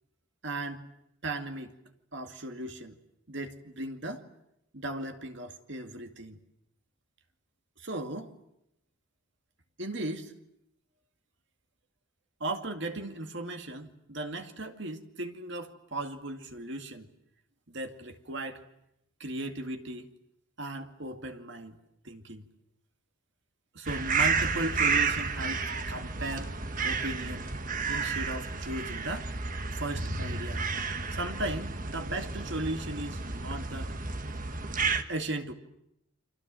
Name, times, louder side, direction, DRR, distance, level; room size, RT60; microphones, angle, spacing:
voice 1, 0.4-0.8 1.2-1.7 2.1-3.0 3.3-4.2 4.7-6.4 7.8-8.3 9.8-10.3 12.4-17.1 17.7-18.6 19.2-20.1 20.6-21.8 22.0-22.4 23.7-26.5 26.8-27.5 27.9-29.3 29.7-30.6 31.1-33.9 35.1-35.5, right 2 dB, 60° right, 2.3 m, -36 dB
sound 1, 23.9-35.0, right 5 dB, 40° right, 1.6 m, -31 dB
30.0 x 25.5 x 7.7 m
head